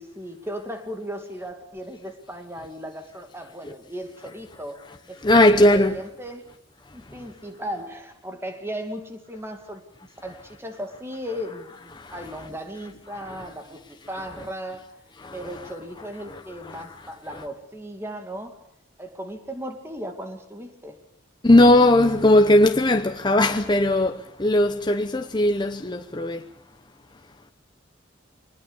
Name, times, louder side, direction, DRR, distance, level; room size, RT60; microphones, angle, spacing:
voice 1, 0.0-5.2 5.5-6.4 6.9-15.0 15.3-18.6 19.0-21.0, equal, 10° right, 2.4 m, -36 dB
voice 2, 4.8-6.0 10.3-10.4 11.3-11.4 11.9-12.5 12.8-13.5 14.0-14.5 15.2-17.4 21.4-26.4, left 1 dB, 20° left, 0.8 m, -20 dB
23.5 x 20.0 x 7.1 m
head